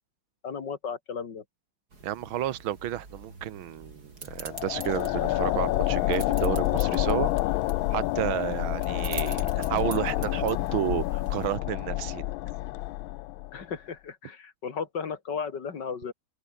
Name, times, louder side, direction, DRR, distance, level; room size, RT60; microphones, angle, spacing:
voice 1, 0.4-1.4 13.5-16.1, left 6 dB, 60° left, 2.7 m, -35 dB
sound 1, 1.9-11.6, right 3 dB, 50° right, 5.0 m, -45 dB
voice 2, 2.0-7.3 7.9-12.2, right 12 dB, 80° right, 1.9 m, -31 dB
sound 2, 4.3-13.6, left 17 dB, 80° left, 1.4 m, -28 dB
open air
omnidirectional pair, 2.2 m